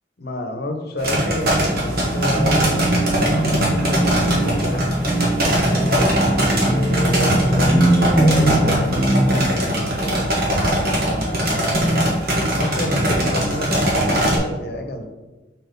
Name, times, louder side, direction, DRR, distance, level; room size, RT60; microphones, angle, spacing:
voice 1, 0.2-2.9 3.4-4.9 5.4-10.3 10.8-12.1 12.5-15.0, left 1 dB, 60° left, 4 dB, 0.9 m, -29 dB
sound 1, 1.0-14.4, right 1 dB, 55° right, 1.6 m, -21 dB
sound 2, 2.0-9.6 10.6-10.8 11.2-12.2, right 1 dB, 5° right, 0.6 m, -21 dB
4.4 x 4.2 x 5.2 m, 1.2 s
head